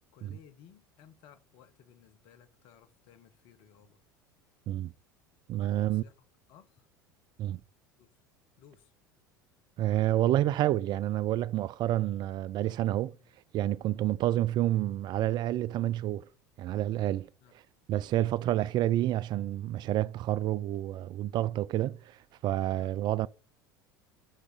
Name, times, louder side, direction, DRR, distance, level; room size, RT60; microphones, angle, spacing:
voice 1, 0.1-4.0 5.7-6.1 6.5-6.9 8.0-8.1 8.6-8.9 13.1-13.3 17.4-17.5 22.7-22.9, left 9 dB, 55° left, 1.3 m, -58 dB
voice 2, 5.5-6.0 7.4-7.6 9.8-13.1 13.5-16.3 16.6-17.3 17.9-23.3, right 13 dB, 45° right, 0.4 m, -29 dB
6.4 x 5.7 x 6.5 m
figure-of-eight pair, 70°, 11 cm